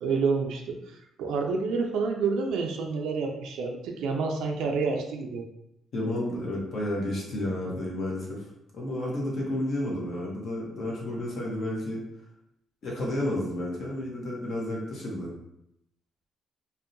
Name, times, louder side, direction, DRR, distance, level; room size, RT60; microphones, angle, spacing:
voice 1, 0.0-5.4, right 4 dB, 90° right, 2 dB, 0.3 m, -28 dB
voice 2, 5.9-8.5 8.7-12.0 12.8-15.3, left 1 dB, 60° left, -3 dB, 0.8 m, -31 dB
2.6 x 2.1 x 2.5 m, 0.81 s
cardioid pair, 90°, 0 cm